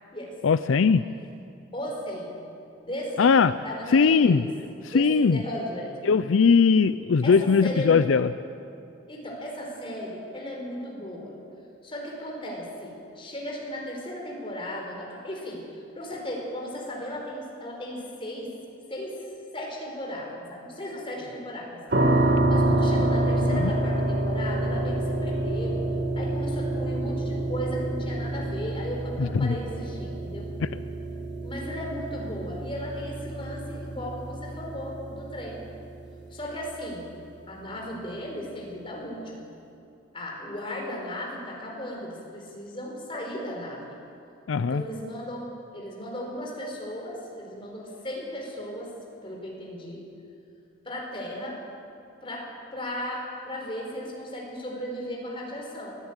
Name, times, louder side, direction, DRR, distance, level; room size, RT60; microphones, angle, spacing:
voice 1, 0.4-1.0 3.2-3.6 3.9-4.5 4.8-5.4 6.0-8.3 23.5-23.7 29.2-29.5 30.6-30.7 44.5-44.8, left 5 dB, 75° left, 13 dB, 0.5 m, -20 dB
voice 2, 1.7-2.4 2.8-3.3 3.6-4.4 4.8-5.9 7.2-8.0 9.1-11.4 11.8-18.5 18.9-19.1 19.5-21.8 22.5-25.8 26.2-30.5 31.4-35.6 36.3-37.1 37.5-39.4 40.1-44.0 44.6-48.9 49.2-50.0 50.8-51.6 52.2-55.9, equal, 25° left, -1 dB, 4.6 m, -36 dB
sound 1, 21.9-36.8, right 1 dB, 55° right, 1.8 m, -28 dB
22.5 x 14.5 x 8.9 m, 2.6 s
head